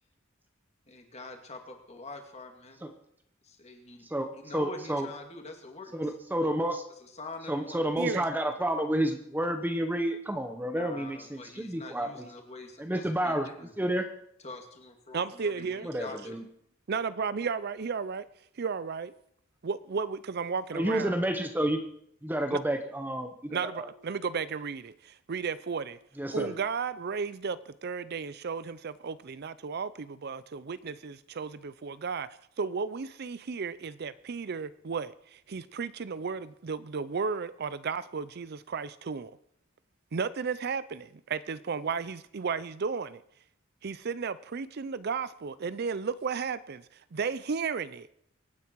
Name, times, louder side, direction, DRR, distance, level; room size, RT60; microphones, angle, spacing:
voice 1, 0.9-2.8 3.4-4.1 4.3-5.9 7.0-7.8 10.6-13.7 14.4-16.2, left 2 dB, 30° left, 3 dB, 2.4 m, -45 dB
voice 2, 4.0-5.1 5.9-6.8 7.5-12.3 12.8-13.5 13.8-14.1 15.8-16.4 20.7-21.8 22.2-23.9 26.2-26.6, right 1 dB, 10° right, 6 dB, 0.9 m, -30 dB
voice 3, 15.1-15.9 16.3-16.4 16.9-18.3 18.6-19.1 19.6-21.1 22.5-22.6 23.5-26.0 26.3-32.3 32.6-39.3 40.1-43.2 43.8-48.1, right 5 dB, 50° right, 16 dB, 0.5 m, -34 dB
24.5 x 9.5 x 4.6 m, 0.70 s
head